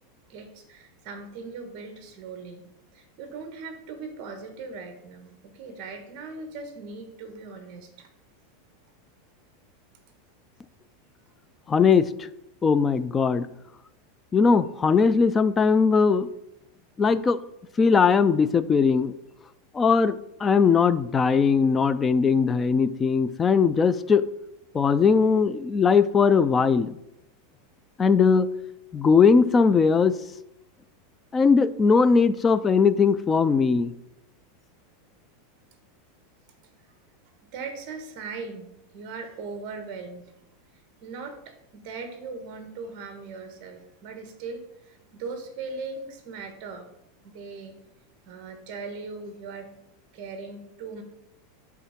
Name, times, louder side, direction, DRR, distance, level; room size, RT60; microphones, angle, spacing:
voice 1, 0.3-8.1 37.5-40.3 41.0-46.9 47.3-47.8 48.2-49.7 50.1-51.0, right 4 dB, 40° right, 6 dB, 1.4 m, -39 dB
voice 2, 11.7-12.3 12.6-13.5 14.3-16.3 17.0-17.4 17.8-19.1 19.7-24.2 24.7-27.0 28.0-28.5 28.9-30.2 31.3-33.9, left 5 dB, 15° left, 15 dB, 0.3 m, -20 dB
8.2 x 3.6 x 5.9 m, 0.83 s
supercardioid pair, 165°, 0 cm